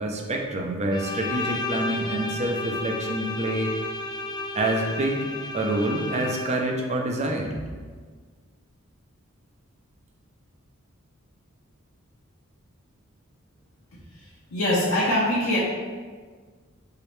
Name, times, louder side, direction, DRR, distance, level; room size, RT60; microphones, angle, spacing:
voice 1, 0.0-3.7 4.5-5.2 5.5-7.7, right 1 dB, 30° right, 1 dB, 0.5 m, -27 dB
Bowed string instrument, 0.9-6.7, left 2 dB, 20° left, 0.3 m, -32 dB
voice 2, 14.1-15.6, left 1 dB, 75° left, -8 dB, 0.8 m, -24 dB
4.7 x 3.0 x 3.2 m, 1.5 s
head